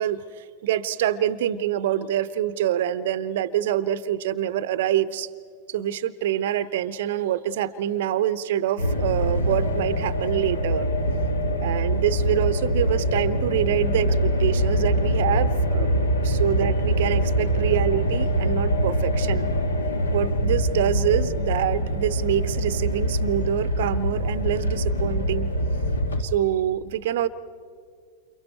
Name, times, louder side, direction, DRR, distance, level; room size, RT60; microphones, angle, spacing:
voice 1, 0.0-5.3 5.7-10.9 11.6-19.5 20.1-25.5 26.2-27.3, right 11 dB, 55° right, 15 dB, 0.6 m, -26 dB
sound 1, 8.8-26.2, equal, 75° left, 1.4 m, -24 dB
30.0 x 28.0 x 4.5 m, 2.2 s
figure-of-eight pair, 90°, 0 cm